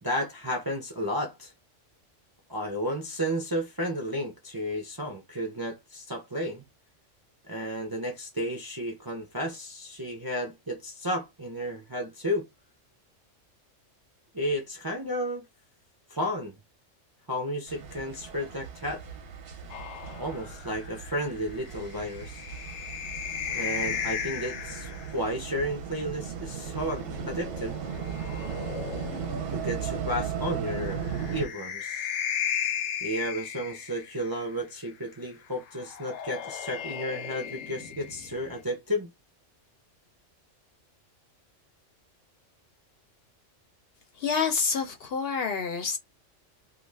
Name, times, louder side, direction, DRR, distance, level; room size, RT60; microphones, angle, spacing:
voice 1, 0.0-1.5 2.5-6.6 7.5-12.5 14.3-15.5 16.1-16.6 17.3-19.0 20.2-22.4 23.5-27.8 29.5-31.0 31.3-32.1 33.0-39.1, equal, 30° right, 0.4 m, -32 dB
sound 1, 17.7-31.5, right 7 dB, 55° right, 0.7 m, -37 dB
sound 2, 19.7-25.2 26.6-29.6 30.9-34.4 35.7-38.6, left 8 dB, 85° left, 1.0 m, -36 dB
voice 2, 44.2-46.0, left 5 dB, 60° left, 0.7 m, -28 dB
2.4 x 2.4 x 3.2 m
omnidirectional pair, 1.3 m